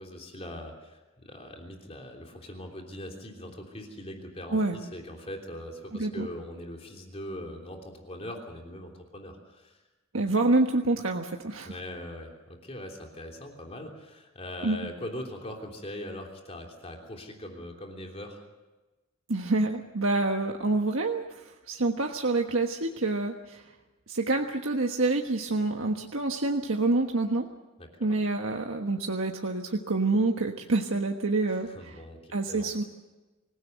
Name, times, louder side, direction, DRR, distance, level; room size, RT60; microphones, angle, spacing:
voice 1, 0.0-9.8 11.6-18.5 27.8-28.2 31.4-32.7, left 1 dB, 30° left, 2 dB, 3.3 m, -41 dB
voice 2, 5.9-6.3 10.1-11.7 14.6-14.8 19.3-21.4 21.7-23.6 24.1-27.5 28.0-31.9 32.3-32.8, right 2 dB, 80° right, 3 dB, 1.4 m, -27 dB
26.0 x 16.5 x 8.0 m, 1.1 s
head